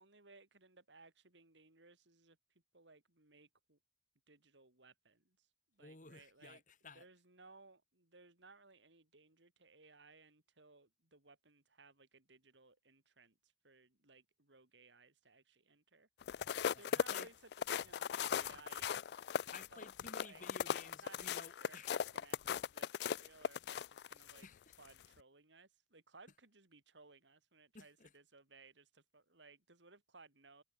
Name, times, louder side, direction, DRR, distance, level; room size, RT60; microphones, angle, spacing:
voice 1, 0.0-2.4 2.7-3.8 4.3-5.5 5.7-6.6 6.9-16.1 16.6-19.0 19.7-19.9 20.2-20.4 20.9-24.5 24.8-30.6, right 3 dB, 80° right, 3.8 m, -62 dB
voice 2, 5.8-7.0 16.7-17.3 19.5-22.0 24.4-24.8 27.7-28.1, left 4 dB, 45° left, 2.1 m, -55 dB
sound 1, 16.2-24.4 24.9-25.1, left 8 dB, 60° left, 0.3 m, -38 dB
head